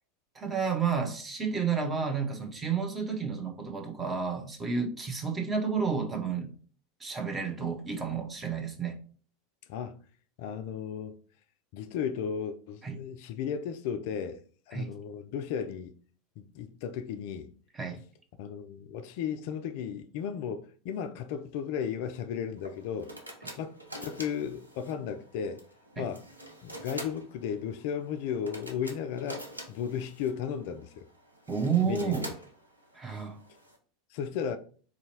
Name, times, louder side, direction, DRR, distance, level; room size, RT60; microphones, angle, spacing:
voice 1, 0.3-6.5 7.0-9.0 12.8-12.9 14.7-14.9 17.7-18.0 26.0-26.1 31.5-32.3 32.9-33.4, right 6 dB, 20° right, 0.8 m, -31 dB
voice 2, 10.4-11.2 11.7-14.4 14.7-15.9 16.4-17.5 18.4-23.1 23.6-25.6 26.0-26.2 26.6-31.0 31.9-32.3 33.1-33.2 34.1-34.6, left 8 dB, 55° left, 0.3 m, -35 dB
sound 1, 22.6-33.8, right 1 dB, 90° right, 0.6 m, -46 dB
3.9 x 2.7 x 2.9 m
figure-of-eight pair, 80°, 0 cm